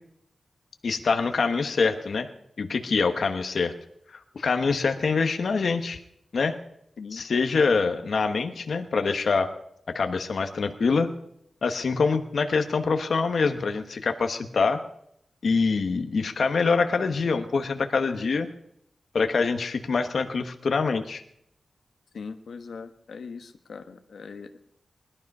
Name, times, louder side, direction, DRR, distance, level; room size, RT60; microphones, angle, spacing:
voice 1, 0.8-2.3 2.6-3.7 4.1-6.0 6.3-6.6 7.1-9.5 9.9-11.1 11.6-14.8 15.4-18.5 19.1-21.2, left 4 dB, 60° left, 7 dB, 1.1 m, -25 dB
voice 2, 22.1-24.6, left 5 dB, 80° left, 7 dB, 1.2 m, -40 dB
20.5 x 12.0 x 5.4 m, 0.74 s
wide cardioid pair, 175°, 0 cm